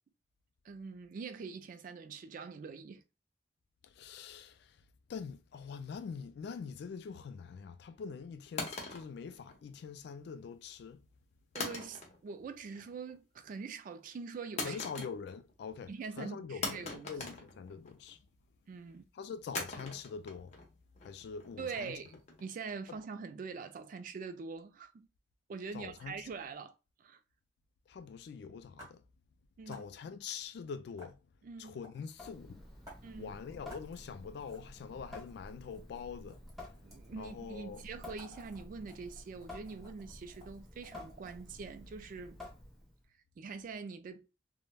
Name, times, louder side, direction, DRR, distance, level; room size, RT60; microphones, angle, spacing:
voice 1, 0.6-3.0 11.5-14.8 15.9-17.1 18.7-19.0 21.6-22.1 22.4-25.1 25.5-26.7 27.0-27.2 29.6-29.8 31.4-31.8 33.0-33.3 36.8-42.4 43.4-44.3, right 5 dB, 50° right, 0.3 m, -44 dB
voice 2, 4.0-4.5 5.1-11.0 14.6-15.9 16.2-18.2 19.2-20.5 21.0-21.9 25.7-26.2 27.9-29.0 29.7-31.2 31.6-32.6 33.2-36.4 37.2-37.8, left 6 dB, 65° left, 0.3 m, -44 dB
sound 1, 8.6-10.0 11.6-12.4 12.7-13.2 14.6-15.5 15.8-15.9 16.6-18.1 19.5-22.6, left 3 dB, 40° left, 0.7 m, -42 dB
sound 2, 28.8-28.9 29.7-29.9 31.0-31.1 31.8-32.1 32.9-33.0 33.7-34.0 34.4-34.7 35.1-37.3 37.8-41.4, equal, 20° right, 1.3 m, -56 dB
Water tap faucet / Sink (filling or washing) / Drip, 32.1-43.0, left 2 dB, ahead, 0.6 m, -51 dB
3.2 x 2.1 x 2.2 m
head